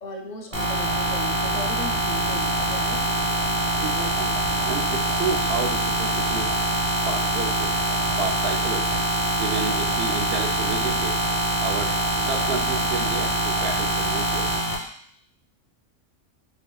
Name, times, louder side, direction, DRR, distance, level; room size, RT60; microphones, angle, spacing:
voice 1, 0.0-3.0, left 3 dB, 50° left, 1 dB, 0.5 m, -37 dB
sound 1, 0.5-14.7, right 1 dB, 30° right, 0.9 m, -24 dB
voice 2, 3.8-4.3 4.6-6.5 7.1-7.7 8.2-9.0 9.4-11.2 11.6-14.6, right 4 dB, 65° right, 2 dB, 0.7 m, -31 dB
4.4 x 3.5 x 2.2 m, 0.64 s
omnidirectional pair, 1.3 m